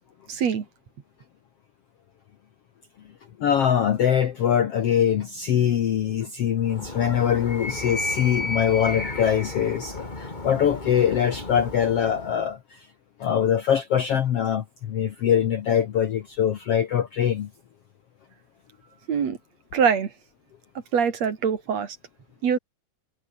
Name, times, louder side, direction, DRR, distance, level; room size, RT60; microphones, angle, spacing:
voice 1, 0.3-0.6 19.1-19.4 19.7-20.1 20.9-22.0 22.4-22.6, right 7 dB, 50° right, 3.1 m, -23 dB
voice 2, 3.4-12.9 13.2-17.5, left 9 dB, 60° left, 1.7 m, -23 dB
Animal, 6.6-12.5, left 2 dB, 15° left, 2.0 m, -33 dB
omnidirectional pair, 4.1 m